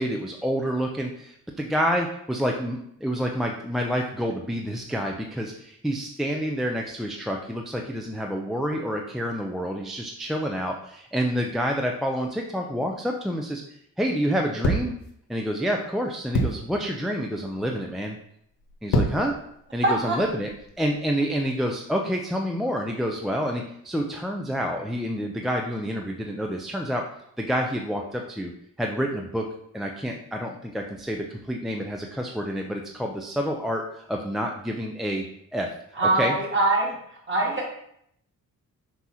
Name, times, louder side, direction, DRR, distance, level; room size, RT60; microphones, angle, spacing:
voice 1, 0.0-14.9 15.3-18.2 18.8-19.3 19.7-20.5 20.8-27.0 27.4-28.5 28.8-29.5 29.7-35.2 35.5-35.7 36.2-36.3, equal, ahead, 1 dB, 0.5 m, -28 dB
sound 1, 14.6-15.1 16.3-16.7 17.5-17.8 18.6-19.3 20.0-20.9, left 1 dB, 85° left, 1.0 m, -25 dB
voice 2, 19.8-20.2 36.0-37.7, right 2 dB, 35° right, -2 dB, 1.8 m, -23 dB
6.1 x 2.9 x 5.6 m, 0.72 s
cardioid pair, 130°, 32 cm